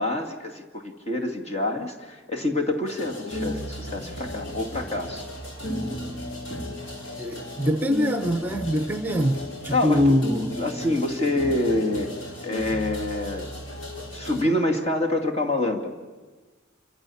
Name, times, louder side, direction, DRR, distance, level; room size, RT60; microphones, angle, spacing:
voice 1, 0.0-5.2 9.7-10.1 10.6-12.1 12.4-13.5 14.1-16.0, left 1 dB, 30° left, 2 dB, 2.5 m, -26 dB
sound 1, 2.9-14.4, left 1 dB, 55° left, 4.6 m, -34 dB
voice 2, 7.2-10.6, left 1 dB, 10° right, 7 dB, 1.0 m, -24 dB
27.5 x 24.5 x 7.2 m, 1.3 s
head